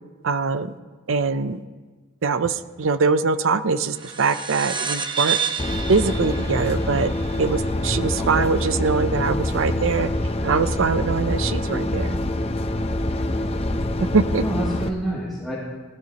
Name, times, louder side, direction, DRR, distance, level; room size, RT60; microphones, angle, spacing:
voice 1, 0.2-0.7 1.1-1.6 2.2-5.4 5.9-7.1 7.4-10.1 10.4-12.2 14.1-14.4, right 4 dB, 70° right, 11 dB, 0.6 m, -22 dB
sound 1, 3.9-8.9, right 7 dB, 25° right, 1.0 m, -30 dB
sound 2, 5.6-14.9, left 1 dB, 30° left, 0.7 m, -25 dB
voice 2, 7.8-8.5 13.1-13.2 14.4-15.5, right 1 dB, ahead, -9 dB, 2.6 m, -29 dB
18.5 x 14.0 x 3.0 m, 1.3 s
head